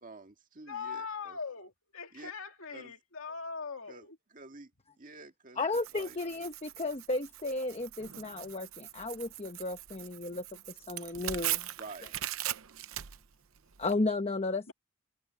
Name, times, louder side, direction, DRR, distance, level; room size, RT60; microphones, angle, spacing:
voice 1, 0.0-1.4 2.1-2.3 2.7-2.9 3.9-4.1 4.3-4.7 5.0-5.6 5.9-6.2 11.8-12.1, right 3 dB, 40° right, 1.8 m, -49 dB
voice 2, 0.7-4.2 14.7-14.8, left 5 dB, 70° left, 2.3 m, -41 dB
voice 3, 5.6-11.7 13.8-14.7, left 2 dB, 30° left, 1.0 m, -34 dB
Tearing, 5.7-13.9, right 13 dB, 70° right, 0.7 m, -40 dB
head